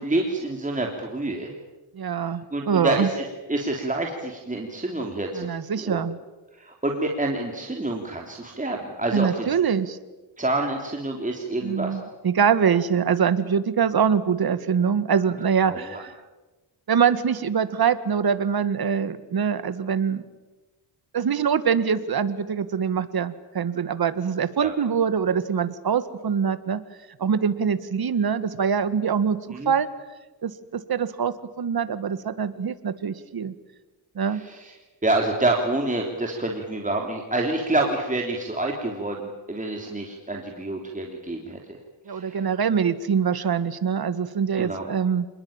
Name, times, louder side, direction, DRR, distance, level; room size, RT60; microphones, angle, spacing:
voice 1, 0.0-1.5 2.2-5.5 5.8-6.0 6.6-9.5 10.4-12.0 15.7-16.0 24.6-24.7 29.5-29.7 34.3-34.7 35.0-41.6 42.1-42.4 44.6-44.8, right 2 dB, 15° right, 1 dB, 3.4 m, -27 dB
voice 2, 1.9-3.1 5.3-6.2 9.1-10.0 11.6-16.1 16.9-20.2 21.1-26.8 27.2-29.9 30.4-33.5 34.2-34.4 42.1-45.3, right 7 dB, 50° right, 13 dB, 1.8 m, -24 dB
27.5 x 21.0 x 8.9 m, 1.2 s
cardioid pair, 95°, 46 cm